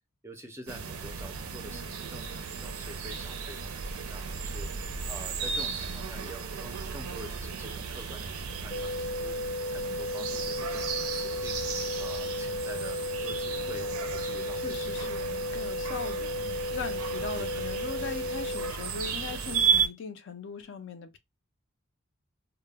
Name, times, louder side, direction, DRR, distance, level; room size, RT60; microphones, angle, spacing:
voice 1, 0.2-4.7 5.1-8.3 8.6-9.4 9.7-11.6 12.0-15.2 16.3-16.6 17.4-17.7, right 1 dB, 10° right, 0.4 m, -46 dB
sound 1, 0.7-19.9, right 6 dB, 75° right, 0.4 m, -34 dB
sound 2, 8.7-18.7, left 2 dB, 85° left, 0.8 m, -34 dB
voice 2, 14.5-21.2, left 5 dB, 55° left, 0.4 m, -40 dB
2.1 x 2.0 x 3.2 m
head